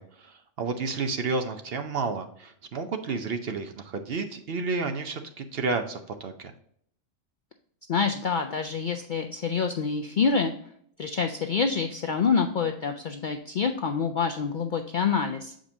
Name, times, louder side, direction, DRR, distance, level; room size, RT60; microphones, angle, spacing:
voice 1, 0.0-6.5, right 4 dB, 55° right, 7 dB, 0.8 m, -31 dB
voice 2, 7.9-10.5 11.0-15.5, left 5 dB, 60° left, 4 dB, 0.5 m, -26 dB
7.1 x 5.1 x 2.6 m, 0.65 s
omnidirectional pair, 1.3 m